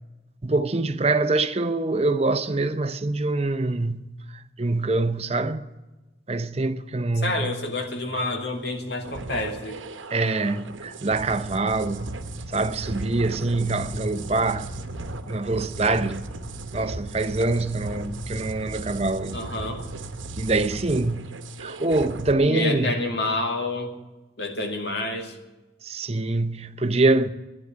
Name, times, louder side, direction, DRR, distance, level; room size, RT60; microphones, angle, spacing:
voice 1, 0.4-4.0 4.6-5.7 6.3-7.6 10.1-14.9 15.3-16.3 16.7-19.4 20.4-22.9 25.8-27.3, right 2 dB, 35° right, 0.7 m, -25 dB
voice 2, 7.2-9.8 19.3-19.8 22.4-23.9 24.4-25.4, left 2 dB, 60° left, 2.2 m, -28 dB
sound 1, 9.0-22.3, right 2 dB, 90° right, 1.0 m, -36 dB
11.5 x 10.0 x 10.0 m
head